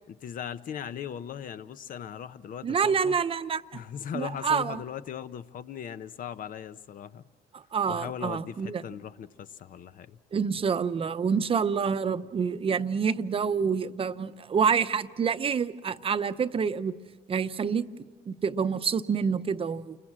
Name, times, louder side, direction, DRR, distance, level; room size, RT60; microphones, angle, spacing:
voice 1, 0.1-3.2 3.7-7.3 7.9-10.2, left 9 dB, 55° left, 13 dB, 0.9 m, -38 dB
voice 2, 2.6-3.6 4.1-4.8 7.5-8.8 10.3-16.9 17.3-17.9 18.3-20.0, right 6 dB, 35° right, 11 dB, 0.8 m, -27 dB
29.0 x 21.5 x 7.4 m, 1.3 s
cardioid pair, 110°, 17 cm